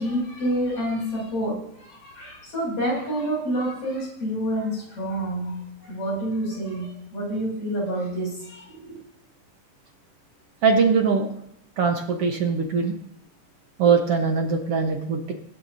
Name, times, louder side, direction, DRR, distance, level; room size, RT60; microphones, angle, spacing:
voice 1, 0.0-9.0, right 1 dB, 65° left, -3 dB, 7.9 m, -28 dB
voice 2, 10.6-11.3 11.8-12.9 13.8-15.3, right 5 dB, 60° right, 3 dB, 2.0 m, -21 dB
23.0 x 12.0 x 2.8 m, 0.73 s
omnidirectional pair, 3.4 m